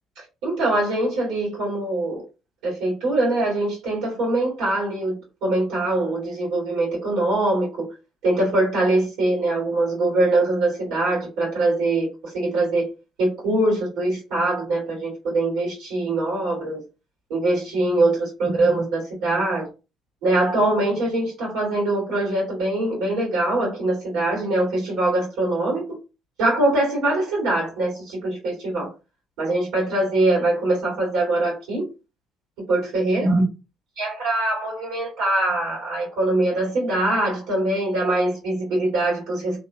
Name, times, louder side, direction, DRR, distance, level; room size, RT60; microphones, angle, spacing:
voice 1, 0.2-2.2 2.6-5.2 5.4-7.7 8.2-12.9 13.2-16.8 17.3-19.7 20.2-25.8 26.4-28.9 29.4-31.8 32.7-33.4 34.0-39.6, right 2 dB, 65° right, 2.2 m, -23 dB
4.3 x 3.0 x 2.2 m
figure-of-eight pair, 50°, 0 cm